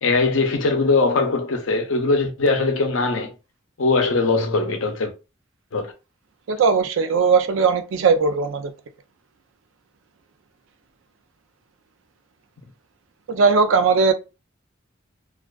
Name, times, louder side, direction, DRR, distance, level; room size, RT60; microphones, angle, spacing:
voice 1, 0.0-3.3 3.8-5.1 5.7-5.9, left 3 dB, 80° left, 0.6 m, -21 dB
voice 2, 6.5-8.7 13.3-14.1, right 5 dB, 80° right, 0.4 m, -18 dB
2.3 x 2.2 x 2.3 m
head